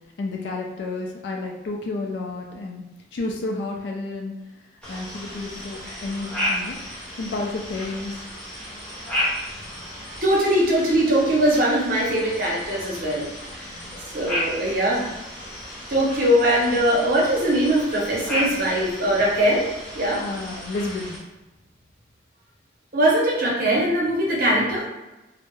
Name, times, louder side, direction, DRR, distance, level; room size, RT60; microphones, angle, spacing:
voice 1, 0.2-2.8 3.1-4.3 4.9-6.8 7.2-8.2 9.6-9.7 13.7-14.0 20.2-21.2, left 2 dB, 60° left, 1 dB, 0.3 m, -31 dB
sound 1, 4.8-21.2, left 1 dB, 5° left, 0.6 m, -33 dB
voice 2, 10.2-13.3 14.1-15.1 15.9-19.7 19.9-20.2 22.9-24.8, right 1 dB, 50° right, -4 dB, 0.7 m, -21 dB
2.2 x 2.0 x 3.0 m, 1.0 s
head